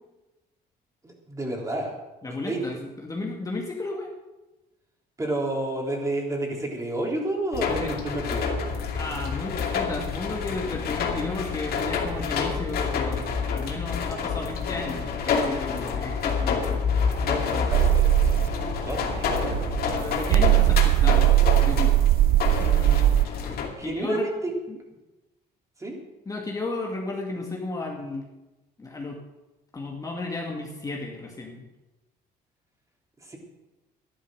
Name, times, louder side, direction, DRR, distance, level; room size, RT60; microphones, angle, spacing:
voice 1, 1.0-1.9 2.3-2.6 5.2-8.6 17.2-18.4 18.8-19.6 23.8-24.5 25.8-26.0 33.2-33.4, right 1 dB, 20° right, 0 dB, 3.6 m, -30 dB
voice 2, 2.2-4.1 7.7-7.9 9.0-16.8 19.9-21.9 22.6-23.1 23.4-24.3 24.7-24.8 26.3-28.2 28.8-29.2 29.7-31.6, left 2 dB, 20° left, -1 dB, 2.0 m, -34 dB
sound 1, 7.5-23.7, left 5 dB, 65° left, 2.5 m, -28 dB
sound 2, 17.7-23.2, right 15 dB, 60° right, 0.5 m, -20 dB
12.5 x 11.5 x 6.5 m, 1.1 s
cardioid pair, 110°, 17 cm